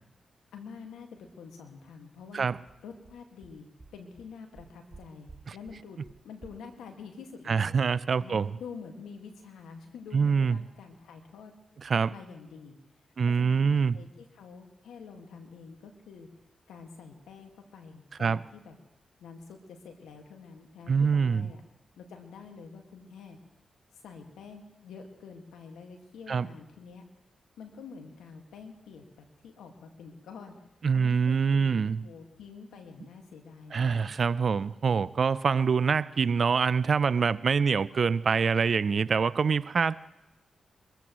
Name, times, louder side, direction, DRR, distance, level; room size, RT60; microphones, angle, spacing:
voice 1, 0.5-2.5 2.8-3.7 3.9-6.0 6.2-7.8 8.2-11.5 12.1-12.8 13.3-16.3 16.7-18.8 19.2-21.6 22.0-23.4 24.0-27.0 27.6-30.5 30.9-34.3, left 5 dB, 90° left, 4 dB, 1.8 m, -47 dB
sound 1, 2.3-2.4 2.7-2.8 3.0-3.1 3.4-3.5 3.8-3.9 4.2-4.3 4.5-5.0 5.3-5.4 5.6-5.7 6.0-6.1 6.4-6.5, right 3 dB, 45° right, 1.5 m, -49 dB
voice 2, 7.5-8.5 10.1-10.6 11.8-12.1 13.2-14.0 18.2-18.4 20.9-21.5 26.3-26.5 30.8-32.0 33.7-40.0, right 5 dB, 60° right, 18 dB, 0.4 m, -25 dB
23.0 x 15.0 x 3.0 m, 0.94 s
supercardioid pair, 45°, 0 cm